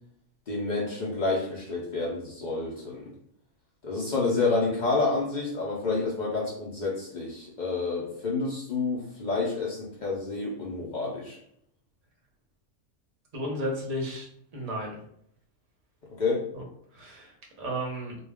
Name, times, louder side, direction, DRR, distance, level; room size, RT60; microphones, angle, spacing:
voice 1, 0.5-3.1 3.8-11.4 16.2-16.4, left 3 dB, 65° left, -3 dB, 0.4 m, -29 dB
voice 2, 13.3-14.3 14.5-15.0 16.5-16.6 16.9-18.2, equal, 35° right, -1 dB, 0.6 m, -33 dB
2.3 x 2.2 x 3.4 m, 0.68 s
omnidirectional pair, 1.5 m